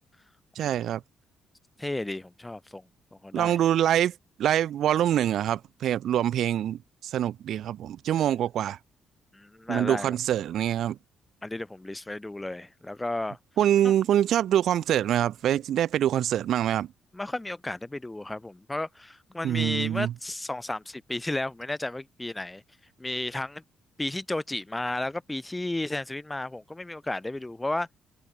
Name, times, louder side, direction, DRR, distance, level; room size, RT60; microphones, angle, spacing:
voice 1, 0.6-1.0 3.3-8.8 9.7-11.0 13.6-16.9 19.4-20.1, right 11 dB, 70° right, 2.3 m, -25 dB
voice 2, 1.8-2.8 3.1-3.6 9.3-10.1 11.4-13.4 13.8-13.9 17.1-22.6 23.0-23.6 24.0-27.9, left 2 dB, 15° left, 6.6 m, -33 dB
cardioid pair, 90°, 0 cm